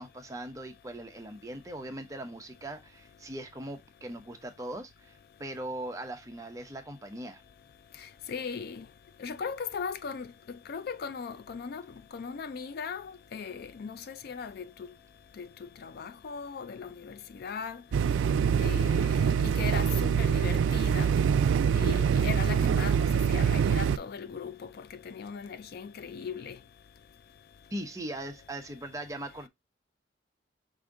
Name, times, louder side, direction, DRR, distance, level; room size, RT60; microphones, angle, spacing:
voice 1, 0.0-7.4 27.7-29.5, right 1 dB, 15° right, 0.7 m, -40 dB
voice 2, 8.0-8.9 9.2-11.8 12.1-14.7 15.4-15.5 15.8-17.8 18.6-21.1 21.7-26.6, left 6 dB, 50° left, 0.3 m, -38 dB
sound 1, 17.9-24.0, right 7 dB, 80° right, 0.3 m, -25 dB
4.9 x 2.6 x 3.5 m
head